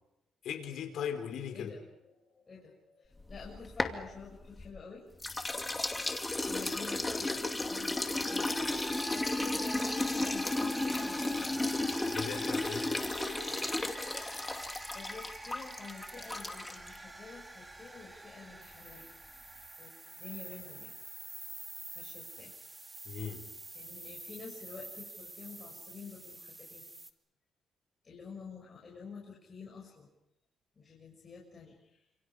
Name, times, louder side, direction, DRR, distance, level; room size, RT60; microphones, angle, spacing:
voice 1, 0.4-1.7 12.1-12.9 23.0-23.4, left 8 dB, 75° left, 5 dB, 4.7 m, -38 dB
voice 2, 1.5-5.1 6.2-12.3 14.9-19.1 19.8-21.0 21.9-22.5 23.7-26.8 28.0-30.1 30.8-32.0, left 5 dB, 35° left, -3 dB, 7.3 m, -49 dB
sound 1, 3.2-4.8 5.2-17.0, left 2 dB, 15° left, 2.5 m, -34 dB
sound 2, 8.2-27.1, right 2 dB, 20° right, 2.4 m, -46 dB
30.0 x 27.5 x 5.1 m, 0.84 s
cardioid pair, 90°, 0 cm